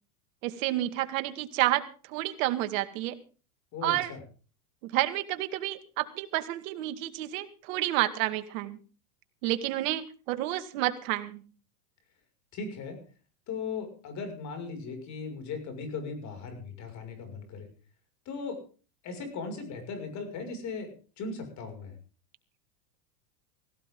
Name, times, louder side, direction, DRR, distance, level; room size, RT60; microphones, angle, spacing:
voice 1, 0.4-3.2 3.8-4.1 4.8-8.8 9.4-11.4, right 15 dB, 60° right, 10 dB, 2.1 m, -30 dB
voice 2, 3.7-4.2 12.5-13.0 13.5-17.7 18.3-18.6 19.0-21.9, left 4 dB, 40° left, 6 dB, 6.2 m, -38 dB
17.5 x 17.0 x 3.8 m, 0.38 s
supercardioid pair, 130°, 44 cm